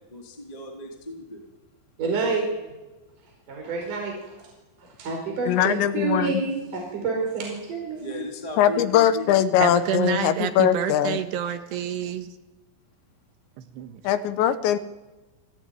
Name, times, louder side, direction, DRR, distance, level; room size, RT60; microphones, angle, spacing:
voice 1, 0.1-1.4 8.0-9.3, left 1 dB, 10° left, 0 dB, 2.4 m, -35 dB
voice 2, 2.0-2.5 3.5-4.5 4.8-8.1, right 4 dB, 40° right, 0 dB, 6.0 m, -28 dB
voice 3, 5.5-6.3 8.6-11.2 14.0-14.8, left 10 dB, 75° left, 11 dB, 3.0 m, -21 dB
voice 4, 9.6-12.3 13.7-14.0, right 9 dB, 70° right, 8 dB, 3.2 m, -28 dB
28.5 x 17.5 x 9.4 m, 1.1 s
omnidirectional pair, 5.7 m